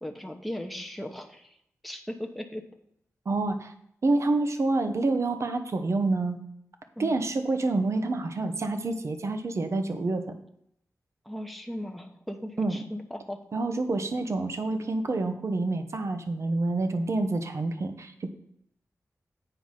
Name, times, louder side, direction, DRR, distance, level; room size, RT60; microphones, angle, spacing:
voice 1, 0.0-1.6 1.8-2.7 7.0-7.2 11.2-13.4, left 1 dB, ahead, 3 dB, 0.9 m, -37 dB
voice 2, 3.3-3.7 4.0-6.4 7.0-10.3 12.6-12.8 13.5-18.3, right 2 dB, 55° right, 7 dB, 0.8 m, -27 dB
7.9 x 4.8 x 5.7 m, 0.73 s
wide cardioid pair, 110°, 6 cm